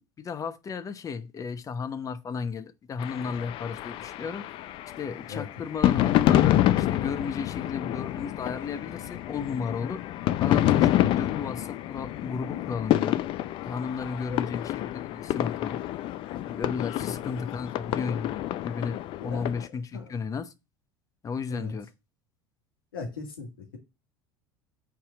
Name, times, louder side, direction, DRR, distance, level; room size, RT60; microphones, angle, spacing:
voice 1, 0.0-4.5 5.0-10.0 10.4-13.2 13.6-15.8 16.5-20.5 21.2-21.9, left 5 dB, 30° left, 0.9 m, -34 dB
sound 1, 3.0-19.7, left 13 dB, 50° left, 0.5 m, -28 dB
voice 2, 19.2-19.5 19.9-20.1 21.5-21.7 22.9-23.8, left 4 dB, 80° left, 2.0 m, -37 dB
5.8 x 4.4 x 6.2 m
hypercardioid pair, 75°, 11 cm